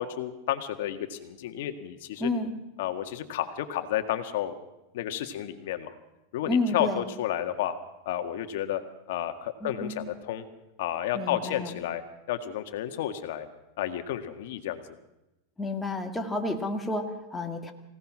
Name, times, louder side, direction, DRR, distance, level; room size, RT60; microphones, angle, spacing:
voice 1, 0.0-2.3 2.8-4.6 4.9-5.9 6.3-7.7 8.1-8.8 9.1-10.5 10.8-12.0 12.3-13.5 13.8-14.8, left 11 dB, 65° left, 7 dB, 1.8 m, -31 dB
voice 2, 2.2-2.5 6.5-7.0 9.6-10.0 11.1-11.8 15.6-17.7, left 2 dB, 5° left, 3 dB, 2.1 m, -30 dB
25.0 x 17.5 x 6.2 m, 0.95 s
supercardioid pair, 145°, 0 cm